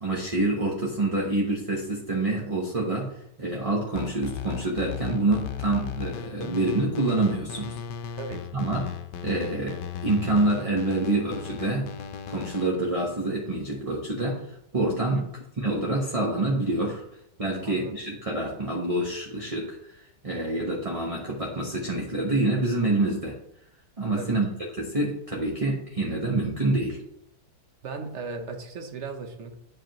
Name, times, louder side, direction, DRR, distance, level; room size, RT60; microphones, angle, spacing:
voice 1, 0.0-7.8 8.5-8.9 9.2-11.9 12.3-15.3 15.6-17.0 17.4-23.4 24.0-27.0, right 2 dB, 25° right, -2 dB, 0.8 m, -27 dB
sound 1, 3.9-12.7, left 8 dB, 80° left, 1.2 m, -36 dB
voice 2, 8.2-8.5 15.1-15.3 17.6-17.9 24.2-24.4 27.8-29.5, right 4 dB, 50° right, 5 dB, 1.0 m, -37 dB
9.8 x 4.9 x 3.0 m, 0.74 s
omnidirectional pair, 1.9 m